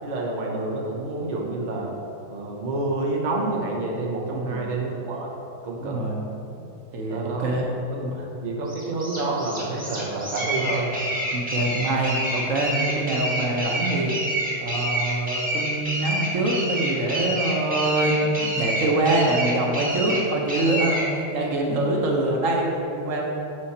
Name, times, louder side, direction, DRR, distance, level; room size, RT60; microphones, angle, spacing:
voice 1, 0.0-1.9 2.3-5.3 5.6-6.0 7.1-7.6 7.9-8.0 8.4-11.0, right 2 dB, 80° right, -2 dB, 0.4 m, -28 dB
voice 2, 4.3-4.7 5.8-6.2 6.9-7.7 8.0-8.3 11.3-14.1 14.6-23.2, right 2 dB, 55° right, -1 dB, 1.0 m, -24 dB
sound 1, 8.7-21.1, right 1 dB, 5° right, 1.0 m, -28 dB
6.5 x 5.5 x 4.2 m, 2.8 s
omnidirectional pair, 2.1 m